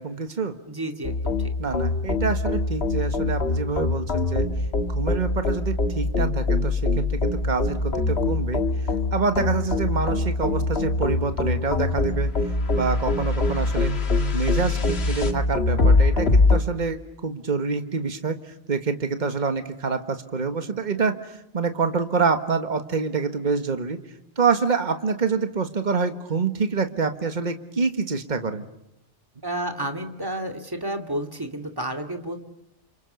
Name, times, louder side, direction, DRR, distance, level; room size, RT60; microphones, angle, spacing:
voice 1, 0.0-0.5 1.6-4.4 4.9-8.6 9.1-12.3 12.7-13.9 14.3-24.0 24.4-28.6, right 5 dB, 40° right, 8 dB, 1.7 m, -26 dB
voice 2, 0.7-1.5 29.4-32.4, right 1 dB, 20° right, 5 dB, 2.5 m, -31 dB
sound 1, 1.0-16.6, left 2 dB, 65° left, 2.0 m, -23 dB
29.5 x 27.5 x 6.9 m, 0.82 s
omnidirectional pair, 1.2 m